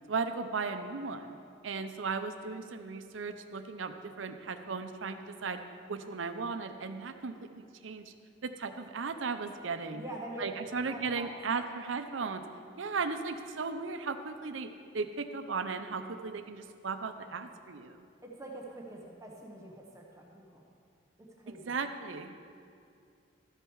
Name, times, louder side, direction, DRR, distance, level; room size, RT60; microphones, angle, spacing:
voice 1, 0.1-1.3 1.6-5.6 5.9-8.1 8.4-10.1 10.4-12.4 12.8-14.7 14.9-18.0 21.5-22.5, right 4 dB, 90° right, 8 dB, 0.6 m, -36 dB
voice 2, 9.9-10.5 10.9-11.3 11.6-11.7 18.4-20.6 21.4-21.7, right 1 dB, 15° right, -1 dB, 0.9 m, -45 dB
13.0 x 6.6 x 4.7 m, 2.4 s
head